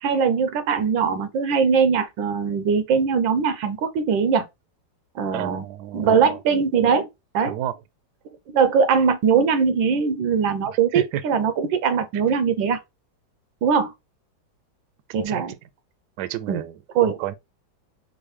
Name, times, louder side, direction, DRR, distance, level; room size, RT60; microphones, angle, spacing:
voice 1, 0.0-4.5 5.1-5.6 5.9-7.1 7.3-7.6 8.5-12.8 13.6-13.9 15.1-15.5 16.5-16.6 16.9-17.2, right 6 dB, 90° right, 1.5 m, -21 dB
voice 2, 5.3-6.4 7.4-7.7 10.9-11.2 15.1-15.6 16.2-16.8 17.2-17.3, right 12 dB, 70° right, 1.1 m, -31 dB
4.6 x 2.7 x 3.0 m
omnidirectional pair, 2.0 m